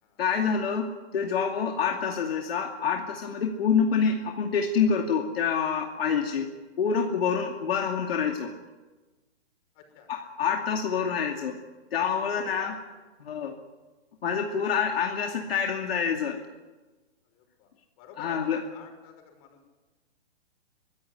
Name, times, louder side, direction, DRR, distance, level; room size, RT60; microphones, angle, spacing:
voice 1, 0.2-6.5 6.8-8.5 10.1-11.6 11.9-12.8 13.2-13.6 14.2-16.4 18.2-18.6, left 6 dB, 65° left, 2 dB, 2.5 m, -27 dB
voice 2, 9.8-10.1 12.3-12.8 17.3-17.7 18.0-19.7, left 7 dB, 35° left, 5 dB, 5.8 m, -50 dB
24.0 x 15.5 x 9.4 m, 1.2 s
hypercardioid pair, 140°, 32 cm